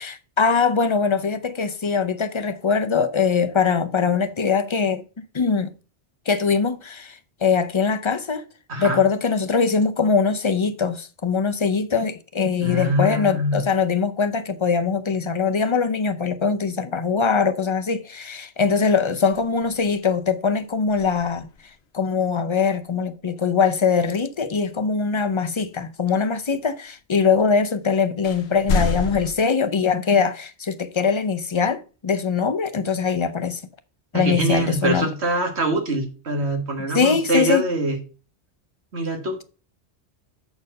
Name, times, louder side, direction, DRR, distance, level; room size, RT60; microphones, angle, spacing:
voice 1, 0.0-5.0 5.3-5.7 6.3-8.4 8.8-21.5 21.9-33.6 34.1-35.1 36.9-37.7, left 5 dB, 35° left, 0.5 m, -22 dB
voice 2, 8.7-9.0 12.6-13.6 34.1-38.0 38.9-39.4, right 1 dB, 70° right, 1.9 m, -24 dB
sound 1, 19.3-20.1 20.9-21.8 25.3-25.4 27.5-27.6 28.2-29.3, left 4 dB, 80° left, 1.1 m, -28 dB
7.0 x 4.3 x 6.4 m
omnidirectional pair, 1.1 m